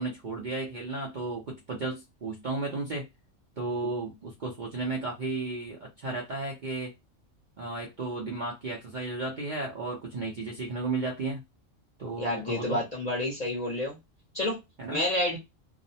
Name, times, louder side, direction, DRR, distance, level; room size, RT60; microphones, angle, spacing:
voice 1, 0.0-3.1 3.6-6.9 7.6-11.4 12.0-12.8 14.8-15.0, right 3 dB, 50° right, 0.6 m, -34 dB
voice 2, 12.2-14.0 14.3-14.6 14.9-15.4, left 1 dB, 40° left, 0.6 m, -29 dB
2.5 x 2.0 x 2.7 m
omnidirectional pair, 1.4 m